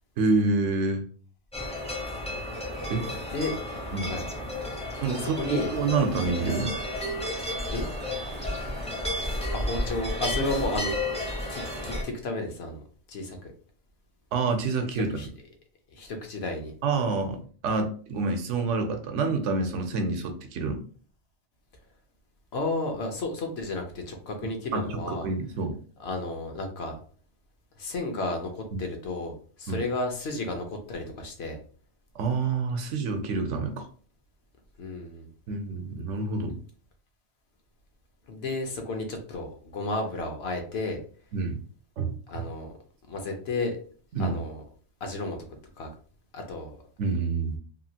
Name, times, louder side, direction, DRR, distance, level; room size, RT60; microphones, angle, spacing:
voice 1, 0.2-1.0 2.9-3.1 3.9-4.1 5.0-5.4 5.7-6.7 14.3-15.1 16.8-20.8 24.7-25.7 28.7-28.8 29.7-29.8 32.2-33.9 35.5-36.6 41.3-41.6 42.0-42.1 44.1-44.4 47.0-47.6, right 4 dB, 80° right, 6 dB, 0.9 m, -27 dB
sound 1, 1.5-12.0, left 1 dB, 10° left, 0.4 m, -32 dB
voice 2, 5.1-5.7 7.7-7.9 9.5-10.9 11.5-12.8 13.1-13.5 15.1-15.3 15.9-16.7 22.5-25.3 26.0-27.0 27.8-31.6 34.8-35.3 38.3-41.0 42.3-42.7 43.1-43.8 44.2-44.6 45.0-45.4 45.8-45.9 46.3-46.8, left 2 dB, 65° left, 4 dB, 0.8 m, -32 dB
3.0 x 2.4 x 2.7 m, 0.44 s
omnidirectional pair, 1.2 m